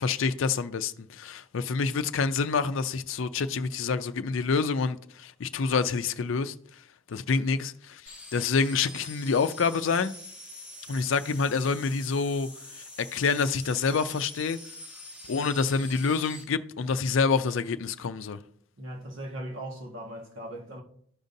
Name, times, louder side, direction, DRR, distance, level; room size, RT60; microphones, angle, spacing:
voice 1, 0.0-6.5 7.1-8.0 8.3-10.2 10.9-12.5 13.0-14.6 15.3-18.4, left 5 dB, 70° left, 0.4 m, -27 dB
sound 1, 8.1-16.4, left 1 dB, 5° right, 1.8 m, -45 dB
voice 2, 18.8-20.8, right 1 dB, 65° right, 1.5 m, -38 dB
13.5 x 5.2 x 2.7 m
head